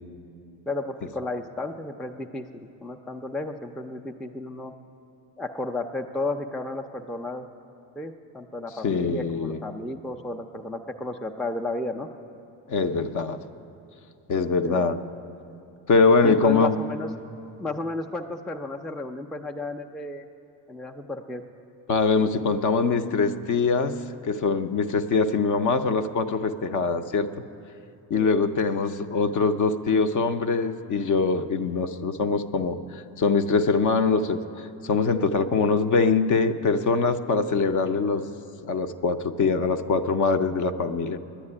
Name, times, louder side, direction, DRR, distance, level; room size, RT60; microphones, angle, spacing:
voice 1, 0.7-4.7 5.4-7.5 8.0-12.1 14.6-14.9 16.2-17.1 17.6-20.3 20.7-21.4 28.1-28.4, left 2 dB, ahead, 4 dB, 0.4 m, -33 dB
voice 2, 8.8-9.6 12.7-13.4 14.3-15.0 15.9-16.8 21.9-24.0 24.2-27.3 28.1-38.2 38.6-41.2, left 4 dB, 40° left, 10 dB, 0.6 m, -23 dB
10.0 x 9.5 x 9.7 m, 2.7 s
supercardioid pair, 95°, 45 cm